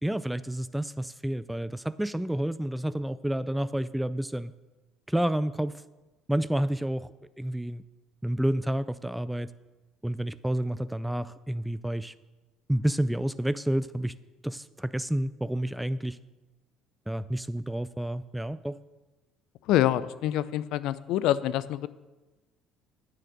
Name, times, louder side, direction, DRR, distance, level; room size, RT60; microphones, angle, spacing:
voice 1, 0.0-4.5 5.1-5.8 6.3-7.8 8.2-9.5 10.0-12.1 12.7-14.1 14.4-16.2 17.1-18.8, right 1 dB, 5° right, 14 dB, 0.4 m, -29 dB
voice 2, 19.6-21.9, left 13 dB, 70° left, 16 dB, 0.4 m, -26 dB
9.7 x 6.7 x 6.7 m, 1.2 s
hypercardioid pair, 65°, 0 cm